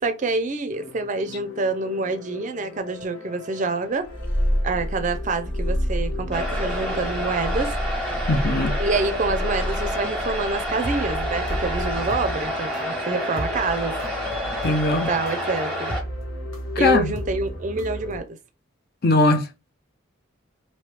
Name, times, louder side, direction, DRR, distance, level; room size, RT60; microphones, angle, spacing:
voice 1, 0.0-4.1 4.6-7.7 8.8-13.9 14.9-16.0 16.8-18.3, right 3 dB, 40° right, 0.5 m, -27 dB
sound 1, 0.7-18.2, left 1 dB, 85° left, 1.2 m, -36 dB
Purr, 4.0-12.1, equal, 25° left, 0.9 m, -28 dB
sound 2, 6.3-16.0, equal, 5° left, 1.1 m, -29 dB
voice 2, 8.3-8.7 14.6-15.1 16.8-17.1 19.0-19.5, left 2 dB, 50° left, 0.6 m, -20 dB
3.1 x 2.7 x 3.3 m
head